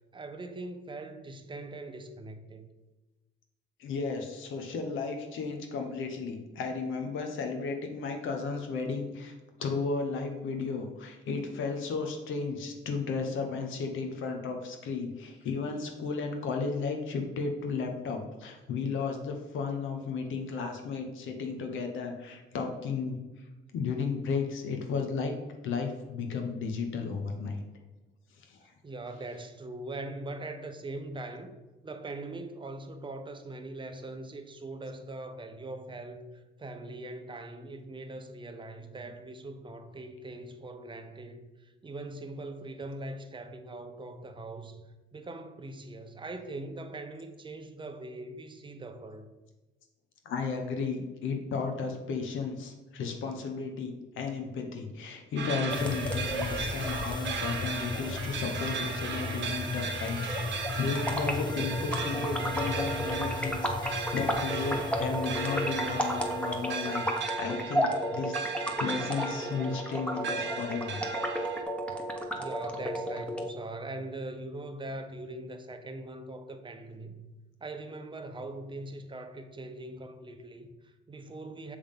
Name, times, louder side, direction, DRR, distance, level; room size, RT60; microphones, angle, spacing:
voice 1, 0.1-2.7 28.6-31.5 31.8-44.8 45.1-49.3 72.3-77.2 77.6-81.8, right 2 dB, 25° right, 0.8 m, -41 dB
voice 2, 3.8-23.2 23.7-25.3 25.6-27.6 28.4-28.7 50.2-60.2 60.8-71.0 71.3-71.4, left 5 dB, 80° left, 1.1 m, -34 dB
sound 1, 55.4-71.6, right 5 dB, 65° right, 1.0 m, -37 dB
sound 2, 55.5-73.5, right 1 dB, 5° left, 1.0 m, -34 dB
sound 3, 55.7-67.4, left 4 dB, 20° left, 0.4 m, -37 dB
7.1 x 3.5 x 5.5 m
cardioid pair, 90°, 20 cm